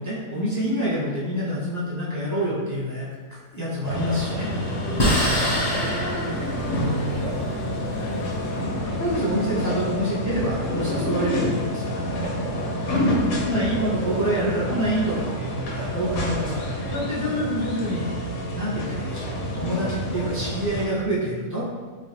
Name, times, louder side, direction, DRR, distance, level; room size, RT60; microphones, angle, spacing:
voice 1, 0.0-4.5 9.0-12.0 13.4-18.1 18.5-19.2 19.5-21.7, equal, 15° left, -9 dB, 0.7 m, -27 dB
sound 1, 3.8-20.9, equal, 90° left, 1.4 m, -28 dB
Bark, 3.8-4.6 5.3-6.0 7.2-7.6 9.2-9.4 12.2-13.1 13.8-14.9 15.7-17.0 19.7-20.4, right 4 dB, 65° right, 0.8 m, -39 dB
sound 2, 3.9-8.6, equal, 40° left, 0.3 m, -27 dB
voice 2, 5.1-10.0 12.2-13.1 13.6-14.8 19.5-19.9, left 3 dB, 70° left, -5 dB, 1.0 m, -40 dB
4.1 x 2.5 x 3.0 m, 1.4 s
omnidirectional pair, 1.7 m